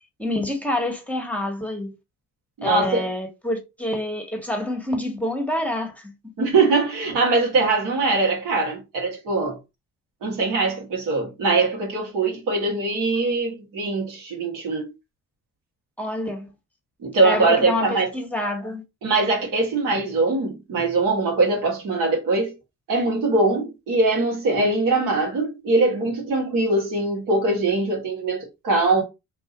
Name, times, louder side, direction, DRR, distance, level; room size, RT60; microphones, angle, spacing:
voice 1, 0.2-1.9 2.6-6.5 16.0-16.5 17.2-18.8, left 1 dB, 5° left, 1.2 m, -27 dB
voice 2, 2.6-3.1 6.4-9.6 10.2-14.9 17.0-18.1 19.0-22.6 22.9-29.0, right 3 dB, 80° right, 1.5 m, -22 dB
2.9 x 2.4 x 3.8 m
supercardioid pair, 60°, 32 cm